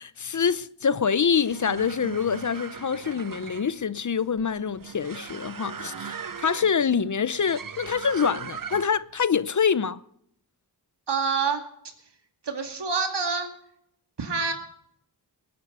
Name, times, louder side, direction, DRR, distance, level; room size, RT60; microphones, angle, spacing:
voice 1, 0.0-10.0, left 6 dB, 45° left, 0.6 m, -25 dB
sound 1, 1.3-9.1, right 7 dB, 50° right, 0.8 m, -39 dB
voice 2, 11.1-11.6 12.4-13.5 14.2-14.5, right 5 dB, 75° right, 2.4 m, -26 dB
19.5 x 9.8 x 5.5 m
wide cardioid pair, 60°, 42 cm